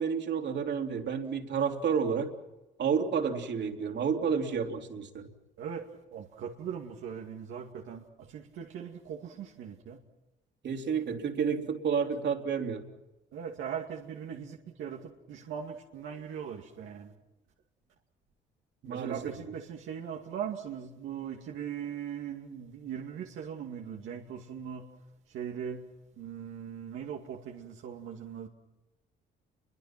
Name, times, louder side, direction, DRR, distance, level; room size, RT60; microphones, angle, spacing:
voice 1, 0.0-2.3 2.8-5.3 10.6-12.8 18.8-19.2, right 6 dB, 60° right, 3.4 m, -30 dB
voice 2, 5.6-10.0 13.3-17.1 18.8-24.9 25.3-25.9 26.2-28.5, right 8 dB, 85° right, 2.4 m, -40 dB
29.5 x 23.5 x 6.0 m
cardioid pair, 90°, 20 cm